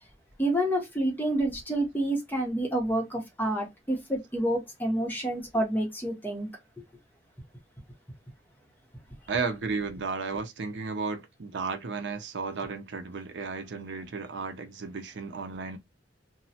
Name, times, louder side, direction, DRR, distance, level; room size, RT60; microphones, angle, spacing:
voice 1, 0.4-6.5, right 1 dB, 10° left, 0.8 m, -28 dB
voice 2, 9.3-15.8, right 4 dB, 75° right, 0.5 m, -34 dB
2.9 x 2.0 x 2.7 m
head